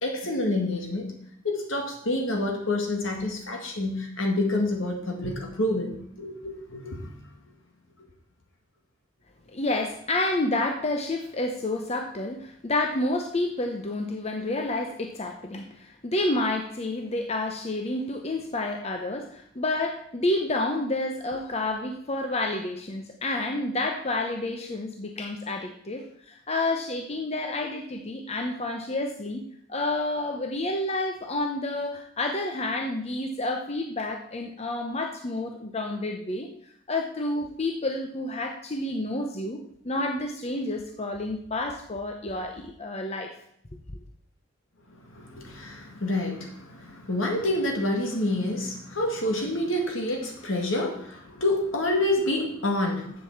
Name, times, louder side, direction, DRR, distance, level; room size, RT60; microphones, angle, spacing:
voice 1, 0.0-1.1 1.4-5.9 6.2-7.1 45.1-53.1, left 1 dB, 70° left, 1 dB, 2.0 m, -28 dB
voice 2, 9.5-29.4 29.7-36.5 36.9-43.3 43.7-43.8, left 2 dB, 30° left, 4 dB, 0.8 m, -29 dB
7.9 x 7.5 x 7.2 m, 0.69 s
head